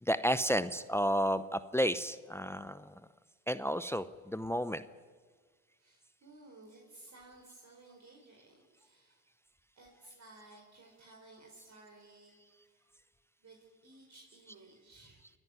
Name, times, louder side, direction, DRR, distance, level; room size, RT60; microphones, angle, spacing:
voice 1, 0.0-2.9 3.5-4.8, equal, 5° left, 14 dB, 0.8 m, -32 dB
voice 2, 5.8-9.2 9.7-12.3 12.6-12.9 13.4-15.2, right 2 dB, 40° right, 0 dB, 4.5 m, -57 dB
27.0 x 11.0 x 9.7 m, 1.5 s
hypercardioid pair, 65°, 41 cm